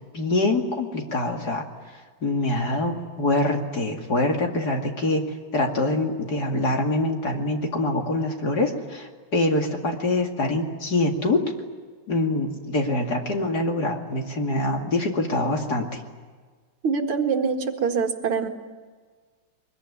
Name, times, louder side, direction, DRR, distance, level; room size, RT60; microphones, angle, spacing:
voice 1, 0.1-1.6 2.2-5.2 5.5-11.4 12.1-16.0, left 2 dB, 45° left, 2 dB, 2.8 m, -24 dB
voice 2, 16.8-18.5, right 5 dB, 75° right, 4 dB, 2.6 m, -24 dB
23.0 x 22.0 x 9.9 m, 1.5 s
omnidirectional pair, 2.4 m